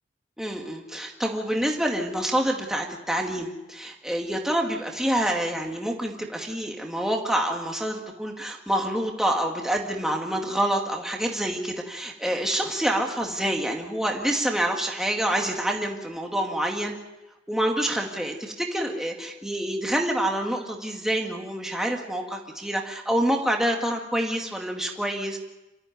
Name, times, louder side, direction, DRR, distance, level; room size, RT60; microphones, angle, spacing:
voice 1, 0.4-16.9 17.5-25.4, right 1 dB, 5° right, 1 dB, 2.1 m, -27 dB
27.0 x 13.5 x 9.4 m, 1.0 s
head